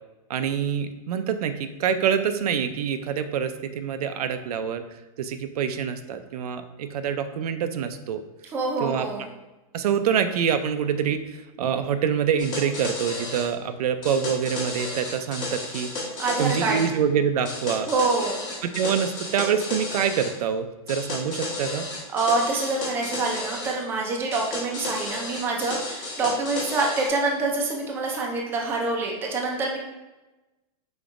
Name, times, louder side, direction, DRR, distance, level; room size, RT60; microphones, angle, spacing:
voice 1, 0.3-4.8 5.2-8.2 8.8-9.1 9.7-15.9 16.4-17.9 18.7-21.9, right 7 dB, 85° right, 9 dB, 0.5 m, -26 dB
voice 2, 8.5-9.3 16.2-16.9 17.9-18.5 22.1-29.8, right 3 dB, 10° right, 0 dB, 0.4 m, -26 dB
sound 1, 12.4-13.5 14.0-16.9 17.4-20.3 20.9-23.8 24.3-27.1, left 2 dB, 25° left, 1.1 m, -33 dB
5.1 x 3.9 x 2.5 m, 1.1 s
supercardioid pair, 170°, 19 cm